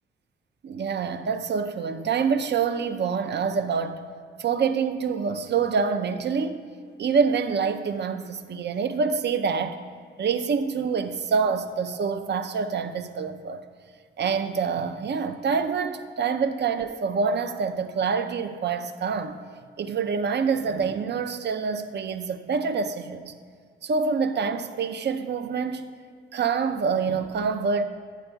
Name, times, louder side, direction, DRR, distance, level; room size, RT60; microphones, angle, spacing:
voice 1, 0.6-4.0 4.4-6.6 7.0-9.8 10.2-13.6 14.2-19.4 19.8-23.3 23.8-25.9 26.3-27.8, right 5 dB, 55° right, 0.5 m, -26 dB
9.2 x 7.9 x 2.3 m
cardioid pair, 90°, 21 cm